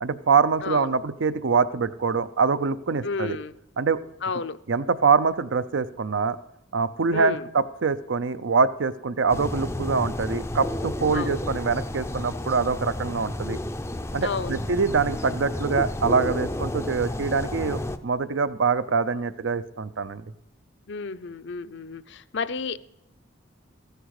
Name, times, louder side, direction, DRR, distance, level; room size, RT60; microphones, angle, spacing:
voice 1, 0.0-3.4 3.8-4.0 4.7-6.4 6.7-13.6 14.1-20.2, right 5 dB, 65° right, 15 dB, 0.5 m, -24 dB
voice 2, 0.6-0.9 3.0-3.5 4.2-4.6 7.1-7.5 11.1-11.5 14.2-14.6 20.9-22.8, left 4 dB, 55° left, 13 dB, 0.6 m, -31 dB
sound 1, 9.3-18.0, left 1 dB, 10° left, 0.5 m, -31 dB
14.5 x 10.0 x 4.8 m, 0.89 s
head